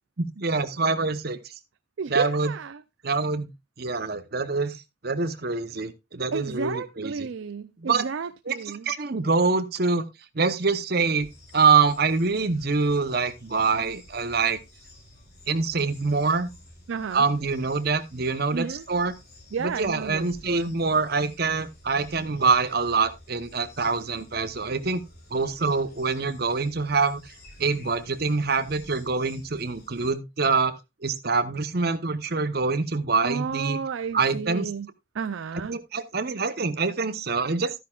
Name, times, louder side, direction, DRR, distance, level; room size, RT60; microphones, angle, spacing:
voice 1, 0.2-1.4 2.1-2.6 3.0-3.5 3.8-4.8 5.0-7.3 7.8-8.1 8.5-10.1 10.3-11.3 11.5-14.6 15.5-16.5 17.1-19.1 19.6-25.0 25.3-27.2 27.6-30.7 31.0-33.8 34.1-34.7 35.7-37.7, right 4 dB, 50° right, 0.8 m, -25 dB
voice 2, 2.0-2.8 6.3-8.9 16.9-17.3 18.5-18.9 19.5-20.7 33.2-34.9 35.1-35.8, right 5 dB, 70° right, 0.4 m, -32 dB
sound 1, 11.0-30.1, left 1 dB, 50° left, 4.1 m, -51 dB
13.0 x 10.5 x 2.4 m
head